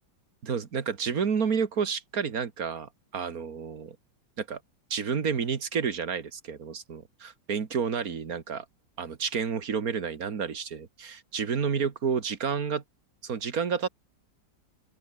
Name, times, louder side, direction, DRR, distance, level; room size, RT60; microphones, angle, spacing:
voice 1, 0.4-4.0 4.4-4.6 4.9-8.6 9.0-12.8 13.2-13.9, right 6 dB, 50° right, 2.1 m, -30 dB
open air
omnidirectional pair, 2.1 m